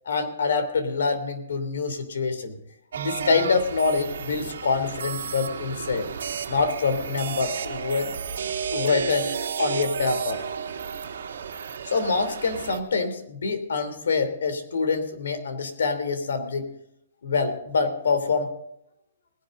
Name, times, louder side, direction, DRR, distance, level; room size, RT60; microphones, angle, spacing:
voice 1, 0.0-2.6 3.0-6.1 6.5-8.1 8.7-9.3 9.6-10.4 11.8-16.7 17.2-18.5, left 4 dB, 75° left, 9 dB, 3.0 m, -25 dB
sound 1, 2.9-12.8, right 7 dB, 65° right, 2.1 m, -32 dB
20.0 x 10.5 x 3.8 m, 0.77 s
hypercardioid pair, 175°, 0 cm